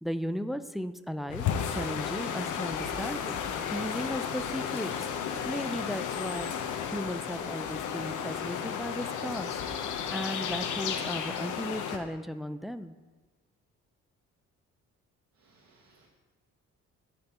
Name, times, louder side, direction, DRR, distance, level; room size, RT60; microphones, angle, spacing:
voice 1, 0.0-1.5 1.7-3.4 3.7-4.9 5.2-6.5 6.9-9.5 10.1-13.0, equal, ahead, 10 dB, 0.4 m, -36 dB
sound 1, 1.3-12.0, left 7 dB, 80° left, 0.9 m, -33 dB
voice 2, 15.4-16.1, right 3 dB, 70° right, -5 dB, 2.0 m, -63 dB
15.0 x 5.4 x 3.0 m, 1.2 s
cardioid pair, 90°, 30 cm